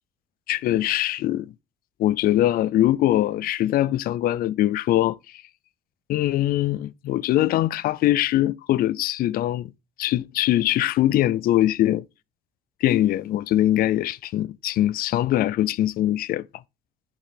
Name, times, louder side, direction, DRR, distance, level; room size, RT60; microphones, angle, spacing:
voice 1, 0.5-1.5 2.0-5.2 6.1-9.7 10.0-12.0 12.8-16.4, left 14 dB, 60° left, 0.4 m, -22 dB
7.5 x 4.7 x 3.3 m
cardioid pair, 110°, 17 cm